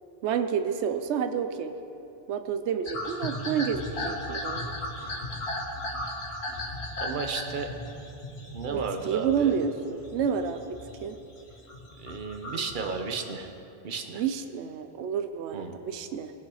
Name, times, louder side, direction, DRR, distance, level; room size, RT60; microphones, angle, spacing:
voice 1, 0.2-1.7 2.3-4.6 8.7-10.6 11.0-11.2 12.5-12.6 14.1-16.3, right 7 dB, 90° right, 9 dB, 0.9 m, -29 dB
sound 1, 2.9-9.7 10.0-11.0 11.4-12.9, left 1 dB, 70° left, 1.8 m, -36 dB
voice 2, 7.0-7.7 8.5-9.5 12.0-13.5 13.8-14.2 15.5-15.8, right 5 dB, 50° right, 5 dB, 1.0 m, -33 dB
19.0 x 6.5 x 4.9 m, 2.8 s
omnidirectional pair, 1.1 m